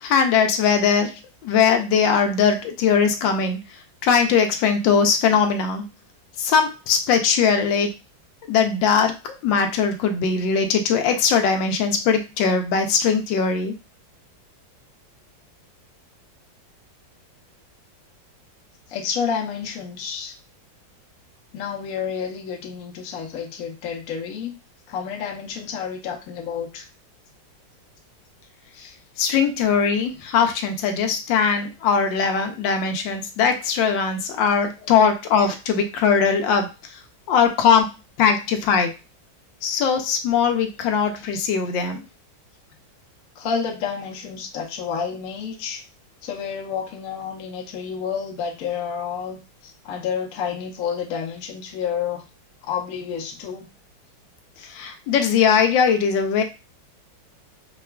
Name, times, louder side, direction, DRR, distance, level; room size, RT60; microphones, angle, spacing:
voice 1, 0.0-5.8 6.4-7.9 8.5-9.1 9.4-13.7 29.2-37.0 37.3-37.9 38.2-38.9 39.6-42.0 54.6-56.4, left 6 dB, 80° left, 5 dB, 1.3 m, -20 dB
voice 2, 18.9-20.4 21.5-24.6 24.9-26.9 28.7-28.9 34.8-34.9 43.4-45.8 46.2-52.2 52.6-53.7 54.6-54.7, left 7 dB, 65° left, 1 dB, 0.9 m, -30 dB
4.7 x 2.3 x 2.2 m, 0.29 s
omnidirectional pair, 2.0 m